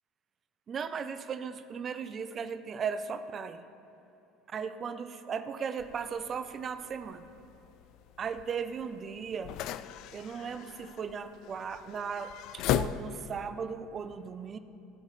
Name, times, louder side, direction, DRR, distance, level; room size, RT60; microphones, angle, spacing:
voice 1, 0.7-3.6 4.5-7.3 8.2-9.7 10.1-14.6, right 6 dB, 40° right, 11 dB, 0.6 m, -37 dB
sound 1, 5.8-13.5, left 11 dB, 60° left, 0.4 m, -38 dB
18.0 x 8.1 x 3.3 m, 3.0 s
hypercardioid pair, 80°, 0 cm